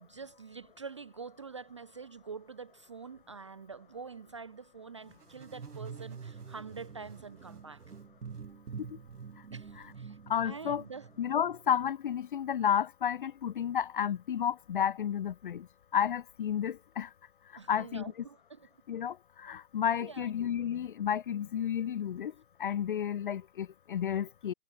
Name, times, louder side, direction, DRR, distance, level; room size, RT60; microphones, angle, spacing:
voice 1, 0.0-7.8 9.5-10.2 10.4-11.1 17.6-18.7 19.5-19.6 20.0-20.3, right 5 dB, 20° right, 0.5 m, -46 dB
sound 1, 5.1-11.9, right 6 dB, 65° right, 2.5 m, -47 dB
voice 2, 10.3-10.8 11.2-15.7 15.9-17.1 17.7-18.0 18.9-22.3 22.6-24.5, left 9 dB, 35° left, 0.6 m, -31 dB
figure-of-eight pair, 120°, 48 cm